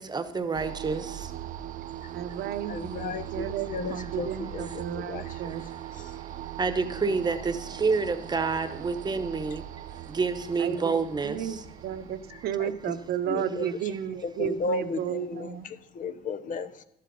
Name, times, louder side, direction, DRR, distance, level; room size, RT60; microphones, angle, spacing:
voice 1, 0.0-1.3 5.4-5.6 6.1-6.3 6.6-9.6 9.9-11.6, right 4 dB, 25° right, 11 dB, 1.0 m, -29 dB
sound 1, 0.5-14.7, right 13 dB, 50° right, 0.4 m, -40 dB
voice 2, 2.1-5.6 10.6-10.9 11.2-15.7, right 9 dB, 70° right, 10 dB, 0.8 m, -33 dB
voice 3, 2.7-5.4 12.6-12.7 13.3-13.7 14.2-16.8, left 3 dB, 50° left, 10 dB, 0.9 m, -34 dB
12.0 x 7.6 x 5.4 m, 0.81 s
cardioid pair, 110°, 17 cm